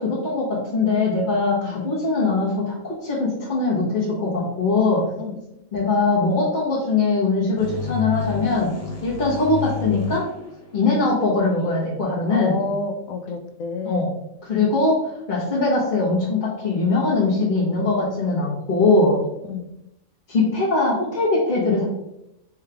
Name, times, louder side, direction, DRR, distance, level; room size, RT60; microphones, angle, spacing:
voice 1, 0.0-5.1 5.7-10.3 10.7-12.6 13.8-14.1 14.4-19.2 20.3-21.9, left 3 dB, 40° left, -9 dB, 1.3 m, -21 dB
sound 1, 7.6-11.3, left 6 dB, 15° left, 0.8 m, -31 dB
voice 2, 12.3-14.1 19.4-19.7, left 4 dB, 75° left, 6 dB, 1.0 m, -29 dB
4.8 x 3.2 x 3.4 m, 0.86 s
omnidirectional pair, 1.5 m